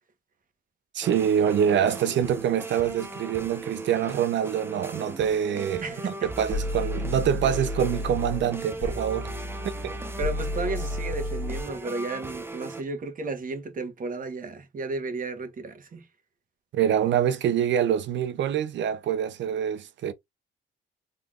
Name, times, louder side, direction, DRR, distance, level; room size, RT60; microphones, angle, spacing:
voice 1, 0.9-5.8 6.2-9.3 9.8-9.9 16.7-20.1, right 9 dB, 70° right, 0.6 m, -25 dB
sound 1, 1.0-12.8, right 3 dB, 10° right, 0.6 m, -38 dB
voice 2, 5.8-6.3 10.2-16.1, right 3 dB, 45° right, 1.2 m, -33 dB
sound 2, 6.2-11.6, left 2 dB, 20° left, 1.0 m, -32 dB
3.8 x 3.2 x 2.5 m
cardioid pair, 90°, 20 cm